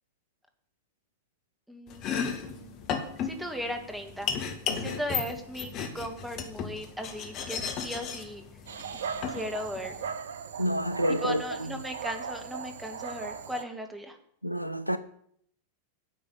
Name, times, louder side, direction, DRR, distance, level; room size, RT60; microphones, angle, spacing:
voice 1, 1.7-2.8 3.2-4.4 4.7-8.4 9.3-10.0 11.1-14.2, equal, 5° right, 2.0 m, -37 dB
Domestic sounds home sounds, 1.9-10.1, left 6 dB, 35° left, 1.7 m, -35 dB
Dog, 8.7-13.6, right 6 dB, 65° right, 0.8 m, -38 dB
voice 2, 10.6-11.7 14.4-15.0, equal, 90° right, 0.6 m, -29 dB
9.8 x 6.2 x 8.3 m
figure-of-eight pair, 90°, 0 cm